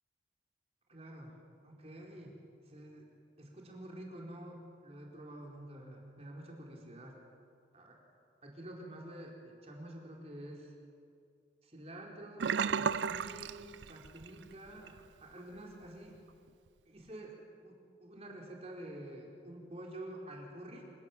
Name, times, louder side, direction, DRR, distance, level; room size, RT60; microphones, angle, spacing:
voice 1, 0.9-2.4 2.6-3.1 3.4-7.2 7.7-8.0 8.4-10.7 11.6-16.2 16.9-20.8, right 1 dB, 35° right, -1 dB, 4.5 m, -48 dB
Sink (filling or washing), 12.4-14.4 14.7-15.0 15.4-15.5, right 6 dB, 90° right, 0.5 m, -33 dB
28.0 x 16.5 x 8.5 m, 2.3 s
head